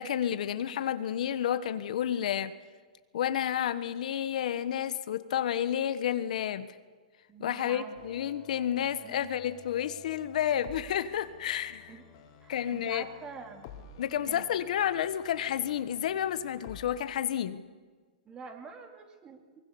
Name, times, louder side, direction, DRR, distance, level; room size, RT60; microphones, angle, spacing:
voice 1, 0.0-2.5 3.1-6.7 7.4-11.9 12.5-13.0 14.0-17.6, left 10 dB, 65° left, 13 dB, 1.2 m, -30 dB
voice 2, 7.3-8.3 9.0-9.3 11.9-12.0 12.4-13.7 14.3-14.4 18.2-19.6, right 5 dB, 20° right, 4 dB, 3.1 m, -46 dB
sound 1, 7.9-16.9, left 7 dB, 45° left, 3.4 m, -52 dB
23.5 x 22.5 x 7.0 m, 1.5 s
hypercardioid pair, 145°, 4 cm